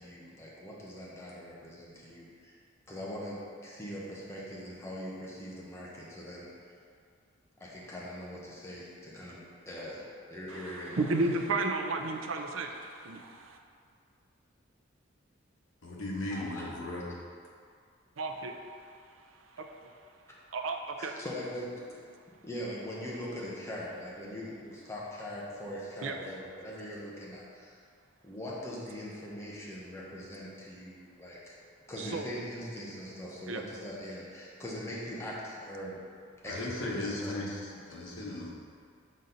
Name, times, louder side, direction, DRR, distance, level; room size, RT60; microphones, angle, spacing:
voice 1, 0.0-2.6 2.9-6.5 7.6-9.4 9.7-11.3 12.4-12.5 16.3-16.7 21.0-22.0 22.4-27.8 28.2-31.5 31.9-36.0 36.4-37.5, equal, 15° left, -6 dB, 1.0 m, -41 dB
voice 2, 10.5-13.6 18.2-18.7 19.6-19.7 20.5-21.2 26.0-26.2 32.0-32.2 33.5-33.6, right 3 dB, 75° right, 4 dB, 0.5 m, -33 dB
voice 3, 15.8-17.1 36.4-38.5, left 2 dB, 85° left, -3 dB, 1.1 m, -36 dB
6.3 x 4.1 x 3.9 m, 2.2 s
head